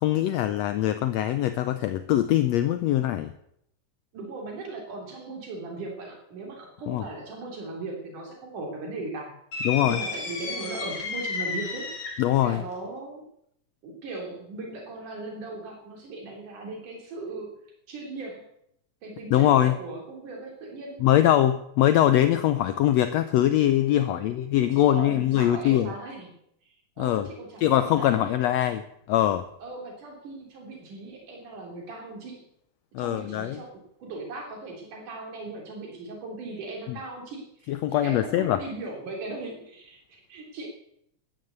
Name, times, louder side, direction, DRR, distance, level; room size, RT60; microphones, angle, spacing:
voice 1, 0.0-3.3 6.9-7.0 9.6-10.0 12.2-12.6 19.3-19.7 21.0-25.9 27.0-27.3 27.6-29.5 32.9-33.6 36.9-37.0 37.7-38.6, left 12 dB, 75° left, 11 dB, 1.6 m, -22 dB
voice 2, 4.1-9.3 9.8-11.9 12.4-13.2 13.8-17.6 17.9-18.5 19.0-21.0 24.0-24.2 24.7-26.3 27.0-28.3 29.6-32.5 33.0-33.7 34.0-40.7, right 2 dB, 85° right, 1 dB, 4.8 m, -38 dB
sound 1, 9.5-12.4, left 4 dB, 55° left, 3.4 m, -32 dB
13.0 x 9.8 x 8.0 m, 0.75 s
omnidirectional pair, 3.5 m